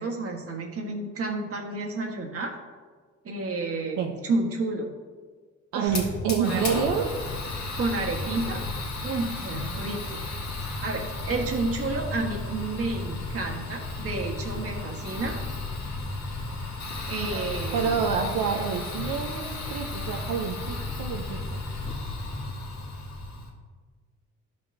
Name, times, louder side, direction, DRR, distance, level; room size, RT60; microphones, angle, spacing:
voice 1, 0.0-2.5 3.2-4.0 4.2-4.9 5.7-6.0 6.4-6.6 7.7-8.6 9.0-10.2 10.8-15.4 17.1-18.0, right 3 dB, 50° right, 0 dB, 1.5 m, -30 dB
voice 2, 5.7-7.2 17.3-17.5 17.7-21.6, right 7 dB, 85° right, 2 dB, 0.8 m, -28 dB
Fire, 5.9-23.5, left 2 dB, 65° left, 2.0 m, -33 dB
13.0 x 5.5 x 2.7 m, 1.5 s
cardioid pair, 90°, 30 cm